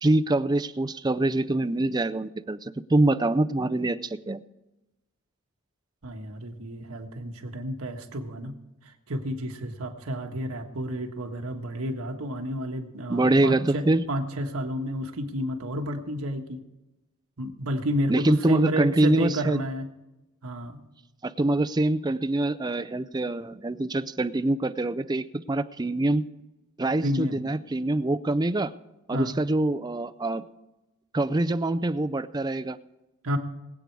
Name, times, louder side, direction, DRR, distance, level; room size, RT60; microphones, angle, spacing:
voice 1, 0.0-4.4 13.1-14.0 18.1-19.6 21.2-26.3 26.8-28.7 29.1-30.4 31.1-32.8, right 2 dB, 20° right, 12 dB, 0.4 m, -25 dB
voice 2, 6.0-8.5 8.8-16.6 17.4-19.9 20.4-20.8 27.0-27.4 29.1-29.4 33.2-33.4, equal, 80° right, 4 dB, 1.5 m, -31 dB
21.0 x 8.3 x 4.7 m, 1.0 s
head